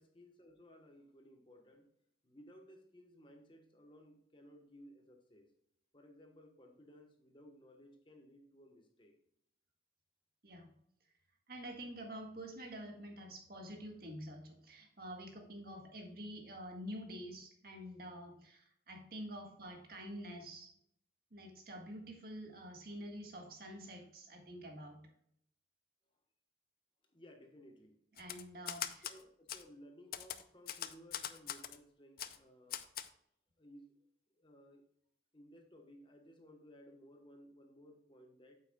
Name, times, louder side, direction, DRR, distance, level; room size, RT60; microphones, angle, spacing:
voice 1, 0.0-1.9 2.2-5.5 5.9-9.1 27.1-28.0 29.0-32.8 33.6-33.9 34.4-34.8 35.3-38.6, equal, 25° left, 3 dB, 1.2 m, -59 dB
voice 2, 11.5-20.7 21.3-25.1 28.2-29.1, equal, 55° right, 2 dB, 1.8 m, -48 dB
Typewriter, 28.2-29.2 29.5-29.6 30.1-31.8 32.2-32.4 32.7-33.1, left 10 dB, 50° left, 0.5 m, -42 dB
8.8 x 8.0 x 2.3 m, 0.71 s
head